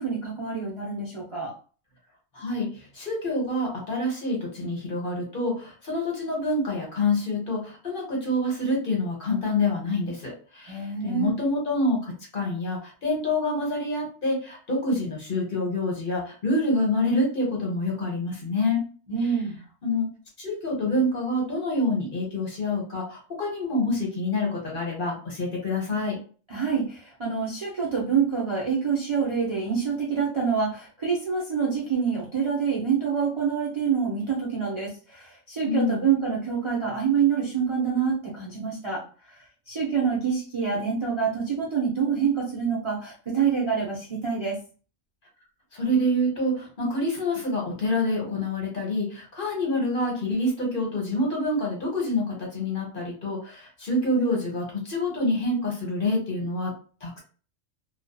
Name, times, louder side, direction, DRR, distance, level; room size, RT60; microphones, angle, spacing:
voice 1, 0.0-1.5 10.7-11.3 19.1-19.6 26.5-39.0 39.7-44.6, right 6 dB, 40° right, -5 dB, 0.4 m, -26 dB
voice 2, 2.3-18.9 19.8-20.1 20.4-26.2 35.6-36.0 45.7-56.7 57.0-57.2, left 1 dB, 45° left, -2 dB, 0.9 m, -27 dB
2.5 x 2.3 x 2.2 m, 0.39 s
omnidirectional pair, 1.3 m